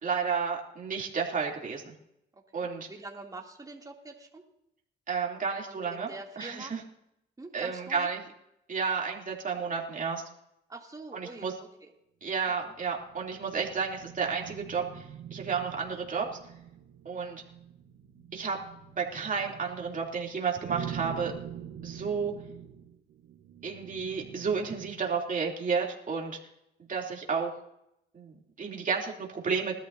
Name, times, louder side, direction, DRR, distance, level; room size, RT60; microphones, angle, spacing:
voice 1, 0.0-1.9 2.5-2.9 5.1-6.1 6.4-6.8 7.5-8.2 8.7-10.2 11.1-11.5 12.2-15.0 15.3-16.3 17.0-17.4 18.3-18.6 19.0-21.3 21.8-22.3 23.6-26.4 26.9-27.5 28.1-29.7, right 5 dB, 40° right, -1 dB, 3.1 m, -31 dB
voice 2, 2.3-4.4 5.7-6.7 7.4-8.1 10.7-11.5 11.8-11.9 12.5-12.7, right 2 dB, 20° right, 0 dB, 2.8 m, -45 dB
sound 1, 12.6-25.2, right 9 dB, 90° right, 1.2 m, -45 dB
20.5 x 13.0 x 2.8 m, 0.80 s
cardioid pair, 90°, 20 cm